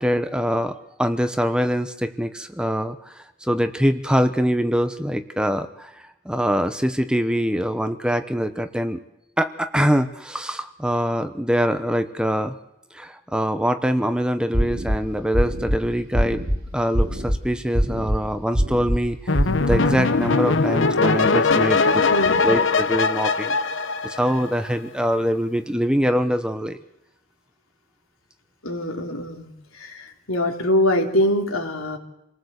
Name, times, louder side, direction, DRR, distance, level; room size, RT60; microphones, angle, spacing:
voice 1, 0.0-9.0 9.4-12.5 12.9-16.4 16.7-19.4 19.7-22.0 22.4-23.5 24.0-26.8, equal, 5° right, 9 dB, 0.9 m, -23 dB
sound 1, 14.5-15.0 15.3-15.8 16.1-16.6 16.9-17.4 17.7-18.2 18.5-19.0 19.3-19.8, equal, 40° right, 4.7 m, -22 dB
sound 2, 19.3-24.7, left 4 dB, 60° left, 1.0 m, -21 dB
voice 2, 22.0-22.5 28.6-29.5 29.8-32.0, left 1 dB, 80° left, 3 dB, 3.4 m, -23 dB
28.0 x 19.0 x 8.1 m, 0.89 s
head